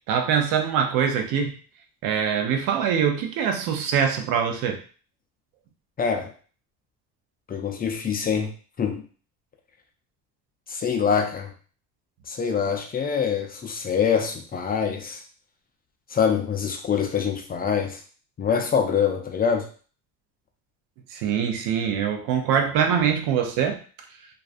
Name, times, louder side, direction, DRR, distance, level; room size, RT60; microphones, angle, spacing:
voice 1, 0.1-1.6 2.0-4.8 21.1-23.8, right 7 dB, 75° right, 5 dB, 0.6 m, -23 dB
voice 2, 6.0-6.3 7.5-8.5 8.8-9.1 10.7-11.5 12.3-15.2 16.1-18.0 18.4-19.7, left 7 dB, 25° left, 3 dB, 0.4 m, -25 dB
2.3 x 2.3 x 2.4 m, 0.40 s
supercardioid pair, 95°, 36 cm